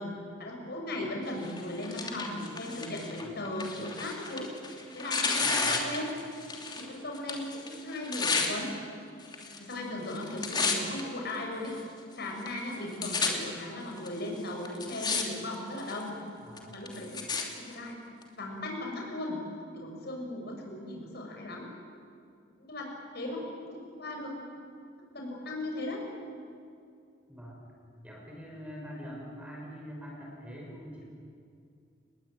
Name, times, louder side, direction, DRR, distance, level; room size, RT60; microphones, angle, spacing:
voice 1, 0.0-4.5 4.9-6.1 6.6-8.7 9.6-11.8 12.2-16.2 16.6-17.2 17.6-18.0 18.3-19.4 19.7-21.7 22.6-23.7 24.0-24.7 25.1-26.0, left 1 dB, 55° left, 1 dB, 6.5 m, -37 dB
Tearing, 1.4-6.9 7.1-8.5 9.2-9.8 10.0-11.0 11.6-11.7 12.5-12.6 12.7-13.3 14.1-14.2 14.6-15.2 15.5-16.0 16.6-17.4 18.2-18.3, left 4 dB, 20° left, 2.9 m, -32 dB
voice 2, 5.4-5.8 16.4-16.8 27.3-27.6 28.0-31.0, equal, 5° right, -2 dB, 6.2 m, -44 dB
29.5 x 20.5 x 9.0 m, 2.4 s
head